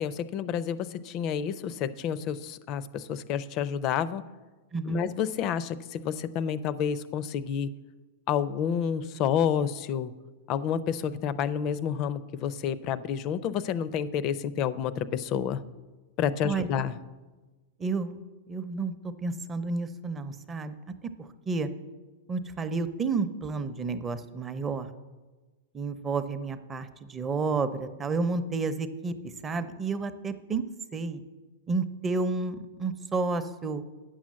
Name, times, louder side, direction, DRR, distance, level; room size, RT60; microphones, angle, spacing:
voice 1, 0.0-4.2 4.8-7.7 8.3-10.1 10.5-15.6 16.2-16.9, left 8 dB, 40° left, 16 dB, 0.5 m, -29 dB
voice 2, 4.7-5.1 16.4-16.7 17.8-18.2 18.5-20.7 21.2-21.7 22.3-24.9 25.7-30.6 30.9-31.2 31.7-33.8, right 4 dB, 20° right, 10 dB, 0.7 m, -31 dB
8.9 x 6.3 x 7.5 m, 1.3 s
hypercardioid pair, 130°, 0 cm